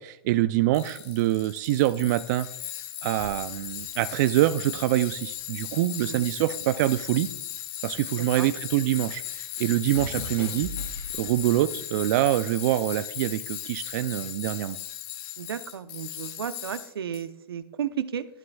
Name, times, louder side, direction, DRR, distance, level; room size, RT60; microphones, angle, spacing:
voice 1, 0.0-2.7 3.0-7.3 7.8-10.7 11.1-14.8, right 15 dB, 50° right, 12 dB, 0.4 m, -25 dB
Tools, 0.7-17.2, left 12 dB, 40° left, 1.0 m, -37 dB
sound 1, 3.2-5.7 6.0-8.6 8.9-11.7 12.4-12.8, left 3 dB, 75° left, 2.1 m, -42 dB
voice 2, 8.1-8.5 15.4-18.3, right 9 dB, 80° right, 12 dB, 0.7 m, -34 dB
11.5 x 9.4 x 2.3 m, 0.78 s
hypercardioid pair, 125°, 12 cm